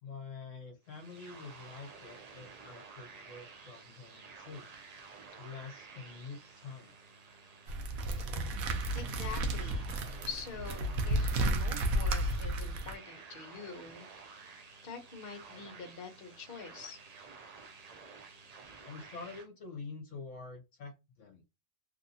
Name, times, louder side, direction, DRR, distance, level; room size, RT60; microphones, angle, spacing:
voice 1, 0.0-4.7 5.4-6.9 18.8-21.4, left 4 dB, 65° left, 3 dB, 1.1 m, -47 dB
sound 1, 0.8-19.5, right 4 dB, 65° right, 0.4 m, -52 dB
sound 2, 7.7-12.9, right 1 dB, 85° right, 1.1 m, -32 dB
voice 2, 8.9-9.9 10.3-14.1 14.8-17.0, left 5 dB, 45° left, 5 dB, 1.1 m, -45 dB
3.0 x 2.6 x 2.7 m, 0.24 s
omnidirectional pair, 1.5 m